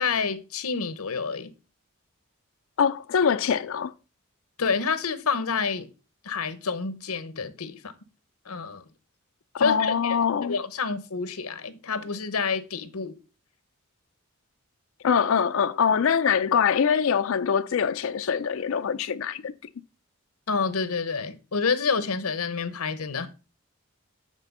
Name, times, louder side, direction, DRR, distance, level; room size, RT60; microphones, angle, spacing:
voice 1, 0.0-1.5 4.6-5.9 6.2-7.9 8.5-8.8 9.6-10.2 10.5-13.2 20.5-23.3, left 5 dB, 90° left, 0.9 m, -28 dB
voice 2, 2.8-3.9 9.5-10.6 15.0-19.5, left 7 dB, 65° left, 0.4 m, -23 dB
8.3 x 4.4 x 5.4 m
head